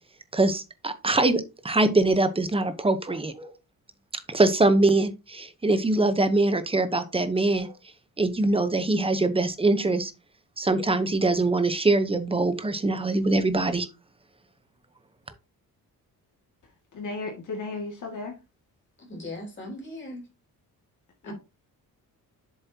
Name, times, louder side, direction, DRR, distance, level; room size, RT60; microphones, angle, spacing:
voice 1, 0.3-3.5 4.3-7.7 8.2-10.1 10.6-13.9, right 2 dB, 15° right, 0.9 m, -23 dB
voice 2, 16.9-18.4 21.2-21.3, left 3 dB, 55° left, 2.2 m, -34 dB
voice 3, 19.0-20.3 21.2-21.3, left 1 dB, 30° left, 3.7 m, -38 dB
7.6 x 7.3 x 2.9 m
wide cardioid pair, 155°, 36 cm